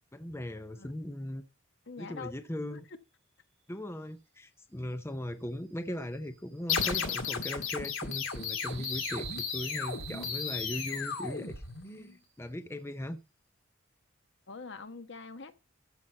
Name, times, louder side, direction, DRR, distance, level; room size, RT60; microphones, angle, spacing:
voice 1, 0.1-1.4 2.0-2.8 3.7-11.5 11.8-13.2, left 1 dB, 15° left, 0.7 m, -39 dB
voice 2, 1.9-2.3 2.7-2.8 14.5-15.5, left 4 dB, 60° left, 1.2 m, -44 dB
sound 1, 5.6-11.6, right 8 dB, 65° right, 5.4 m, -47 dB
sound 2, 6.7-12.1, left 6 dB, 80° left, 2.2 m, -34 dB
14.0 x 5.7 x 5.5 m
head